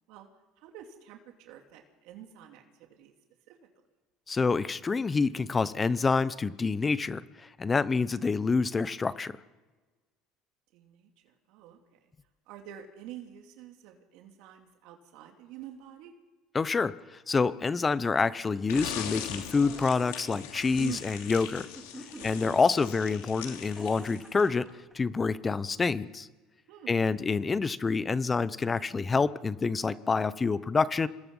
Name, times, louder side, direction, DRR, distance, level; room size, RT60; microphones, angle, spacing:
voice 1, 0.6-3.1 3.5-3.6 10.7-12.0 12.5-16.1 20.8-21.1 22.2-22.7 26.7-26.9, right 11 dB, 70° right, 3 dB, 2.7 m, -47 dB
voice 2, 4.3-7.2 7.6-9.3 16.5-16.9 17.3-21.7 22.2-24.7 24.9-26.3 26.9-31.1, left 4 dB, 20° left, 16 dB, 0.9 m, -27 dB
sound 1, 18.7-24.6, left 9 dB, 85° left, 3.0 m, -40 dB
sound 2, 19.5-20.2 21.7-22.7 23.6-24.9, right 1 dB, 5° right, 4.5 m, -47 dB
27.0 x 20.5 x 5.6 m, 1.3 s
supercardioid pair, 115°, 0 cm